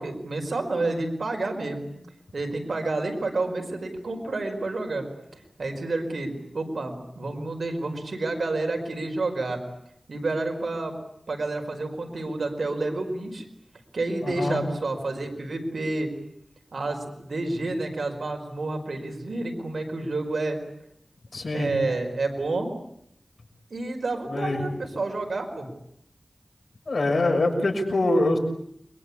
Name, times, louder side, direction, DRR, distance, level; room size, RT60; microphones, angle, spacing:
voice 1, 0.0-2.0 2.3-5.1 5.6-9.6 10.1-10.9 11.3-13.4 13.9-16.1 16.7-20.6 21.5-22.7 23.7-25.7, right 2 dB, 85° right, 4 dB, 4.9 m, -29 dB
voice 2, 14.2-14.6 21.3-21.7 24.3-24.6 26.9-28.4, left 2 dB, 75° left, 3 dB, 6.6 m, -24 dB
30.0 x 23.5 x 8.5 m, 0.73 s
cardioid pair, 45°, 0 cm